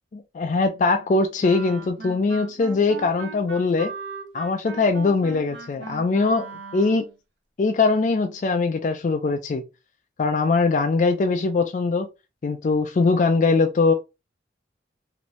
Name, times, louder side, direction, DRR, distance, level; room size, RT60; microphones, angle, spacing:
voice 1, 0.1-3.9 4.3-6.5 6.7-7.1 7.6-9.6 10.2-12.1 12.4-13.9, left 3 dB, 45° left, 0.3 m, -21 dB
Wind instrument woodwind instrument, 1.4-7.2, right 4 dB, 80° right, 0.7 m, -39 dB
2.9 x 2.6 x 3.0 m
head